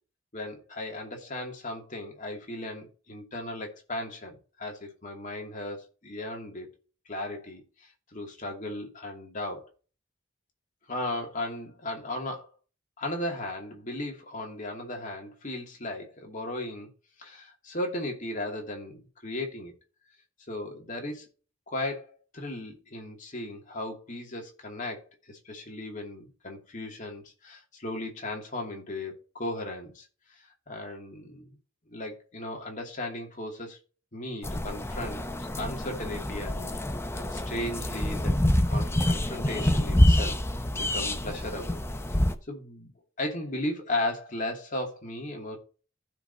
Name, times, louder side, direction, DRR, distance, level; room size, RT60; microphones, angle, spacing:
voice 1, 0.3-6.7 7.1-9.6 10.9-12.5 13.0-16.9 17.2-19.7 20.5-21.2 21.7-22.1 22.3-30.1 30.4-31.6 31.9-33.8 34.1-36.8 37.1-38.3 38.7-40.4 40.8-41.8 42.1-42.2 42.5-42.9 43.2-45.6, left 1 dB, 40° left, 2.6 m, -36 dB
sound 1, 34.4-42.3, left 1 dB, 15° left, 0.7 m, -26 dB
15.0 x 5.1 x 2.8 m
head